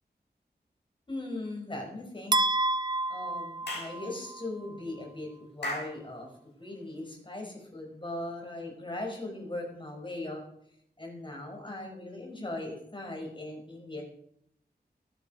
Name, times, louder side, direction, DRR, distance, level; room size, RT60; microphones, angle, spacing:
voice 1, 1.1-2.4 3.1-6.3 6.6-10.4 11.0-14.0, left 2 dB, 30° left, 1 dB, 5.6 m, -39 dB
sound 1, 2.3-4.4, right 2 dB, 25° right, 0.5 m, -29 dB
Clapping / Chirp tweet, 3.7-4.0 5.6-6.0, left 1 dB, 75° left, 6.4 m, -35 dB
17.5 x 14.0 x 4.6 m, 0.73 s
wide cardioid pair, 95°, 18 cm